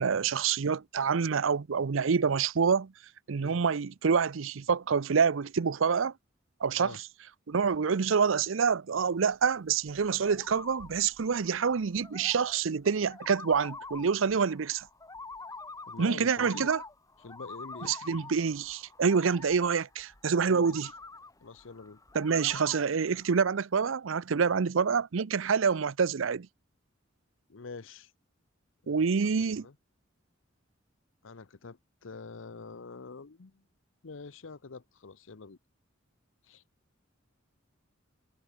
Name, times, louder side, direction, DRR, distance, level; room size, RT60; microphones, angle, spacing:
voice 1, 0.0-2.9 3.3-6.1 6.6-6.9 7.5-14.9 16.0-16.8 17.9-20.9 22.1-26.5 28.9-29.6, right 6 dB, 80° right, 0.6 m, -27 dB
sound 1, 9.2-23.4, left 3 dB, 15° left, 3.3 m, -47 dB
voice 2, 15.9-16.7 17.2-17.9 20.4-20.8 21.4-22.0 27.5-28.1 28.8-28.9 29.2-29.8 31.2-33.6 34.0-35.6 36.4-36.6, left 4 dB, 75° left, 0.8 m, -46 dB
head